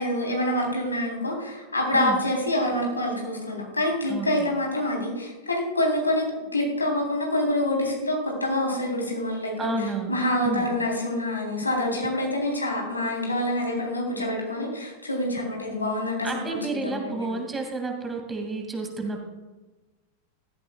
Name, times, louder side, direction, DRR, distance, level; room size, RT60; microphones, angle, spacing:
voice 1, 0.0-6.2 6.5-17.3, left 1 dB, 80° left, -1 dB, 3.7 m, -26 dB
voice 2, 4.1-4.5 9.6-10.2 10.4-10.7 16.2-19.2, right 3 dB, 15° right, 2 dB, 2.4 m, -30 dB
16.5 x 13.5 x 2.4 m, 1.2 s
figure-of-eight pair, 90°, 0 cm